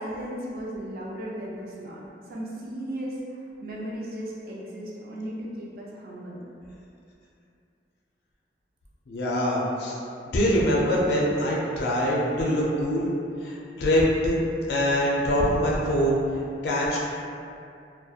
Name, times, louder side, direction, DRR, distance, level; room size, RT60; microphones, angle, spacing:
voice 1, 0.0-2.0 2.3-3.1 3.6-6.4, right 1 dB, 55° right, -4 dB, 0.4 m, -35 dB
voice 2, 9.1-10.0 10.3-13.1 13.4-14.4 14.7-16.2 16.6-17.0, equal, 65° left, -4 dB, 0.4 m, -24 dB
2.7 x 2.0 x 2.3 m, 2.6 s
head